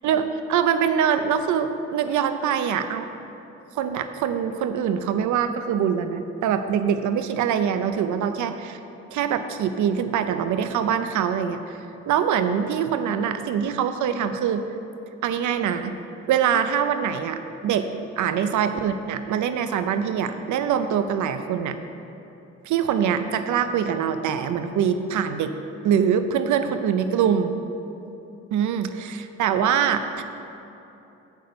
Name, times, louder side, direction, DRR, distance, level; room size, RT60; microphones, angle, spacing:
voice 1, 0.0-3.1 3.7-8.8 9.1-11.8 12.1-14.6 15.2-15.9 16.3-17.9 18.2-21.8 22.6-25.5 25.8-27.5 28.5-30.2, right 8 dB, 75° right, 9 dB, 0.6 m, -24 dB
8.4 x 8.0 x 5.2 m, 2.9 s
cardioid pair, 90°, 30 cm